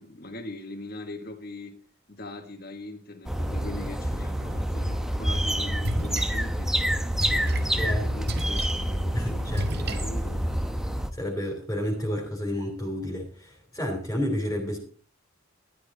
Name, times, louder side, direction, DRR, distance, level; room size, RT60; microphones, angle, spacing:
voice 1, 0.0-1.7 2.1-7.0 7.2-10.5, left 2 dB, 50° left, 1.7 m, -41 dB
sound 1, 3.3-11.1, equal, 5° right, 0.9 m, -28 dB
Splash splatter, 5.4-10.7, right 1 dB, 55° right, 1.7 m, -34 dB
voice 2, 7.7-8.4 9.1-10.1 11.1-14.8, equal, 15° left, 3.0 m, -31 dB
13.0 x 12.0 x 4.1 m
head